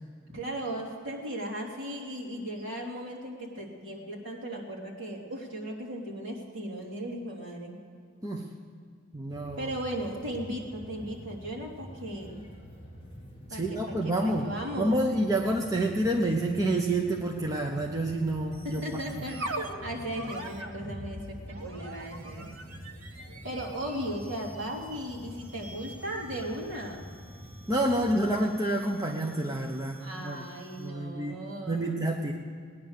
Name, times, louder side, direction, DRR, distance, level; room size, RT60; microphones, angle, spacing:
voice 1, 0.3-7.8 9.6-12.4 13.5-15.0 18.6-21.4 21.6-22.4 23.4-27.0 27.9-28.1 30.0-32.1, equal, 60° right, -3 dB, 3.3 m, -37 dB
voice 2, 9.1-9.6 13.5-14.5 14.8-19.2 27.7-30.4 30.8-32.3, right 1 dB, 15° right, 0 dB, 0.9 m, -28 dB
sound 1, 9.3-28.3, equal, 25° left, 4.9 m, -47 dB
sound 2, 18.5-31.0, right 2 dB, 90° right, 1.6 m, -44 dB
18.5 x 10.0 x 6.6 m, 2.2 s
head